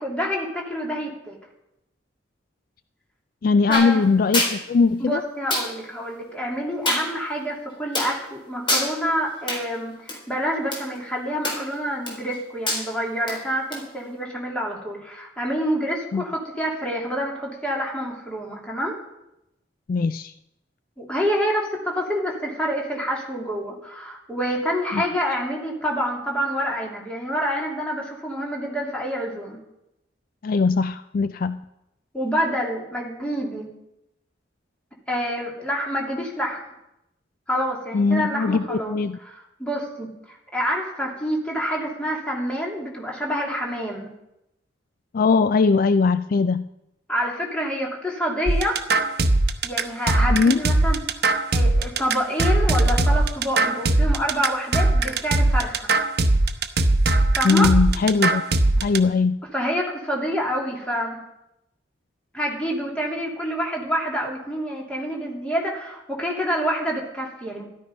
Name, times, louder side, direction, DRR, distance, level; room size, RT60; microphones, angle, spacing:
voice 1, 0.0-1.4 3.7-4.0 5.0-19.0 21.0-29.6 32.1-33.7 35.1-36.6 37.5-39.0 39.2-44.1 47.1-48.8 49.6-51.0 51.5-55.9 57.4-57.7 59.5-61.2 62.3-67.6, equal, 5° left, -2 dB, 2.9 m, -27 dB
voice 2, 3.4-5.2 16.1-16.2 19.9-20.3 24.9-25.0 30.4-31.6 37.9-39.2 45.1-46.7 50.3-50.6 57.4-58.4 58.8-59.4, left 4 dB, 50° left, 13 dB, 0.4 m, -20 dB
sound 1, 3.7-3.9 4.3-4.5 5.5-5.7 6.9-7.0 7.9-8.1 8.7-8.9 9.5-9.6 10.1-10.2 10.7-10.8 11.4-11.7 12.1-12.4 12.7-12.8 13.3-13.4 13.7-13.8, left 1 dB, 25° left, 3.8 m, -24 dB
sound 2, 48.5-59.0, right 2 dB, 60° right, 0.9 m, -20 dB
13.0 x 12.5 x 5.3 m, 0.86 s
head